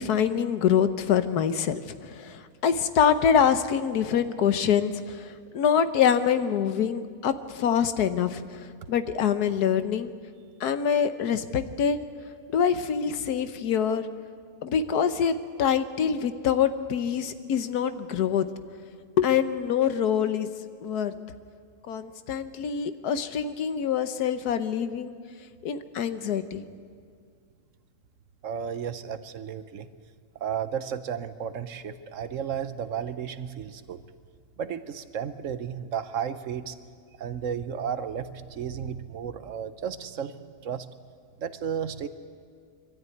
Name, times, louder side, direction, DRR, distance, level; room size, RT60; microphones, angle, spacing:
voice 1, 0.0-8.4 8.9-10.1 10.6-12.0 12.5-14.1 14.6-18.5 19.2-20.5 20.8-21.1 21.9-25.1 25.6-26.6, left 8 dB, 90° left, 11 dB, 1.5 m, -25 dB
voice 2, 28.4-29.9 30.4-34.0 34.6-36.7 37.2-40.9 41.4-42.1, right 8 dB, 60° right, 12 dB, 1.0 m, -33 dB
23.0 x 13.0 x 9.4 m, 2.1 s
omnidirectional pair, 1.6 m